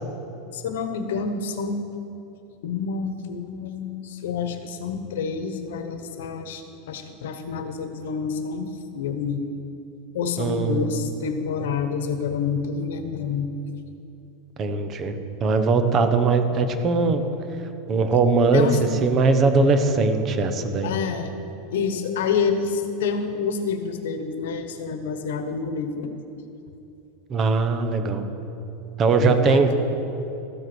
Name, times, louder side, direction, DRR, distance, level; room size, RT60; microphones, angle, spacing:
voice 1, 0.5-1.8 2.6-9.5 10.1-13.5 18.5-18.9 20.8-21.3 21.7-26.1 29.2-29.7, left 6 dB, 90° left, 8 dB, 1.1 m, -28 dB
voice 2, 10.4-11.0 14.6-15.1 15.4-17.2 17.9-18.7 19.0-20.9 27.3-28.3 29.0-29.7, right 4 dB, 30° right, 7 dB, 0.9 m, -20 dB
13.5 x 8.0 x 6.1 m, 2.9 s
supercardioid pair, 150°, 0 cm